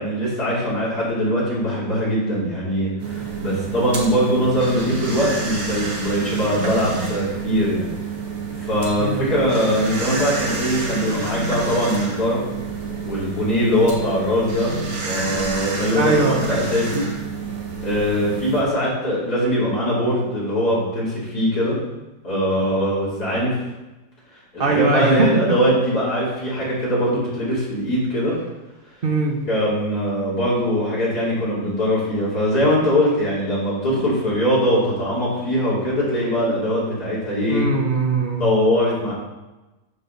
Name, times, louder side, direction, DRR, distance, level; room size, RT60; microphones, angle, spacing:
voice 1, 0.0-7.9 8.6-12.4 13.0-14.7 15.0-17.1 17.8-21.8 22.2-23.6 24.5-28.4 29.5-37.6 38.4-39.1, equal, 65° left, -8 dB, 3.9 m, -21 dB
sound 1, 3.0-18.6, right 4 dB, 85° right, 2.1 m, -28 dB
voice 2, 15.9-16.4 24.6-25.3 29.0-29.4 37.5-38.5, right 3 dB, 40° right, 2 dB, 1.1 m, -20 dB
9.1 x 6.4 x 4.0 m, 1.1 s
omnidirectional pair, 1.8 m